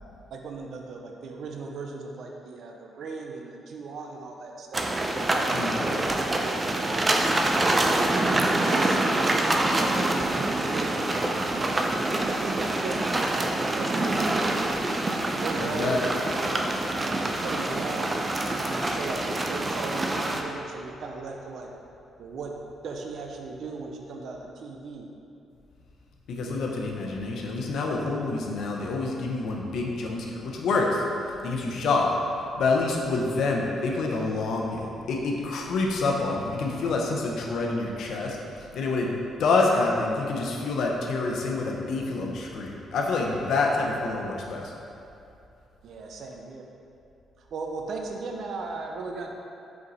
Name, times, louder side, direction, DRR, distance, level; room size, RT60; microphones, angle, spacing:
voice 1, 0.3-4.9 5.3-7.1 8.2-11.2 11.6-14.9 15.4-16.6 17.0-18.2 18.6-21.7 22.2-22.6 22.8-25.1 45.8-46.6 47.4-49.3, right 3 dB, 65° right, 1 dB, 0.6 m, -37 dB
sound 1, 4.7-20.4, right 2 dB, 20° right, 0.4 m, -26 dB
voice 2, 5.5-5.9 15.6-16.0 26.3-31.0 31.4-32.0 32.6-38.4 38.7-44.7, left 3 dB, 70° left, -1 dB, 0.8 m, -27 dB
5.1 x 4.6 x 4.1 m, 2.7 s
cardioid pair, 120°, 0 cm